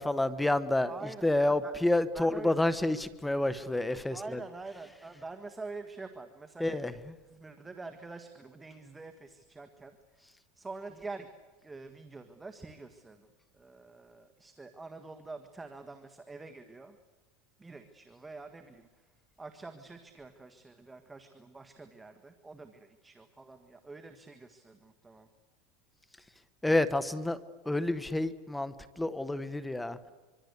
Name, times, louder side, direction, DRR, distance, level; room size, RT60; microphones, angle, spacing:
voice 1, 0.0-0.9 1.2-4.4 6.6-6.9 26.6-27.4 27.6-30.1, left 2 dB, 5° left, 14 dB, 1.2 m, -29 dB
voice 2, 0.8-1.7 2.1-2.5 4.1-6.9 7.3-10.3 10.5-11.3 11.6-13.3 13.5-17.0 17.6-19.0 19.4-25.3, right 3 dB, 10° right, 7 dB, 1.6 m, -46 dB
25.5 x 24.0 x 8.2 m, 1.2 s
supercardioid pair, 140°, 0 cm